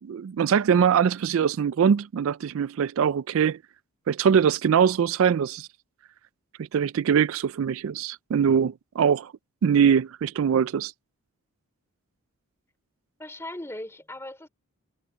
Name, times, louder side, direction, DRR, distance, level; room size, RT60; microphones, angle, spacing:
voice 1, 0.0-3.6 4.1-5.7 6.6-9.3 9.6-10.9, right 7 dB, 65° right, 0.3 m, -22 dB
voice 2, 13.2-14.5, left 1 dB, 10° left, 2.9 m, -38 dB
head